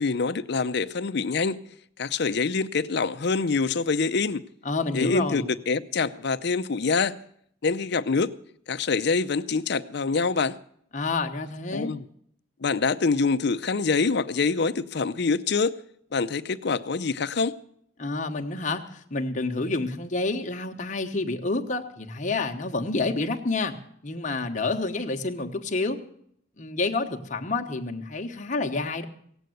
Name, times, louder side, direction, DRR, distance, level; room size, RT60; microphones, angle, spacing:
voice 1, 0.0-1.6 2.0-4.4 4.9-7.2 7.6-8.3 8.7-10.6 11.7-12.0 12.6-15.7 16.1-17.5, left 4 dB, 60° left, 0.6 m, -25 dB
voice 2, 4.6-5.5 10.9-11.9 18.0-18.8 19.1-23.7 24.0-26.0 26.6-29.0, left 3 dB, 40° left, 1.1 m, -28 dB
17.0 x 8.2 x 7.8 m
head